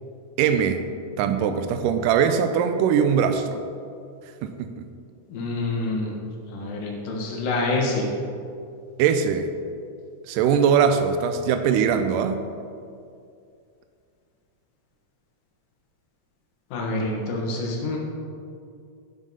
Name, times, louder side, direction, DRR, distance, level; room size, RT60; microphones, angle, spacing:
voice 1, 0.4-0.8 1.2-3.6 4.4-4.9 9.0-9.5 10.3-12.5, right 7 dB, 85° right, 9 dB, 2.2 m, -21 dB
voice 2, 5.3-6.1 6.5-8.1 16.7-18.0, left 2 dB, 90° left, -1 dB, 3.1 m, -27 dB
8.9 x 6.4 x 5.4 m, 2.4 s
omnidirectional pair, 3.8 m